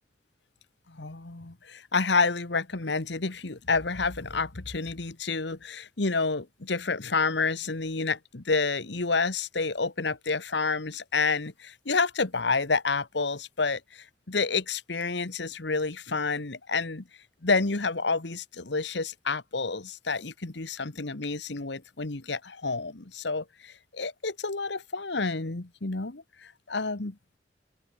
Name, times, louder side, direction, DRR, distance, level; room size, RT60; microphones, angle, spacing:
voice 1, 0.9-17.0 17.4-27.1, left 4 dB, 75° left, 1.4 m, -29 dB
open air
head